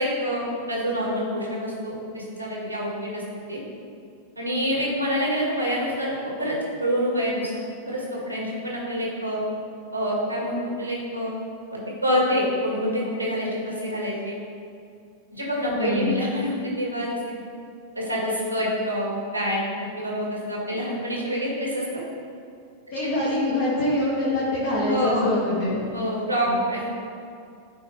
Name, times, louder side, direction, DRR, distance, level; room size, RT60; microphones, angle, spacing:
voice 1, 0.0-3.2 3.5-3.6 4.4-9.4 9.9-11.4 11.7-14.4 15.3-17.2 18.0-19.7 20.0-21.9 23.0-23.1 24.9-25.3 25.9-26.9, equal, 90° right, -3 dB, 1.8 m, -27 dB
voice 2, 15.7-16.2 22.9-25.8 26.5-26.6, left 1 dB, 55° left, -7 dB, 1.6 m, -24 dB
10.5 x 4.3 x 3.2 m, 2.4 s
figure-of-eight pair, 90°, 0 cm